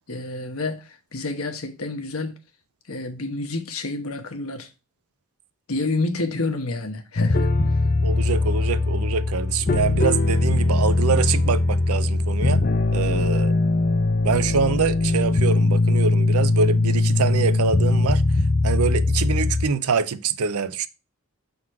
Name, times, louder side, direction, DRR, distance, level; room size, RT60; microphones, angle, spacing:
voice 1, 0.1-2.4 2.9-4.7 5.7-7.5, left 2 dB, 75° left, 1.2 m, -29 dB
sound 1, 7.2-19.7, left 2 dB, 45° left, 0.6 m, -21 dB
voice 2, 8.0-12.6 12.9-13.5 14.2-18.2 18.6-20.9, right 5 dB, 90° right, 0.5 m, -25 dB
6.1 x 3.9 x 4.7 m
head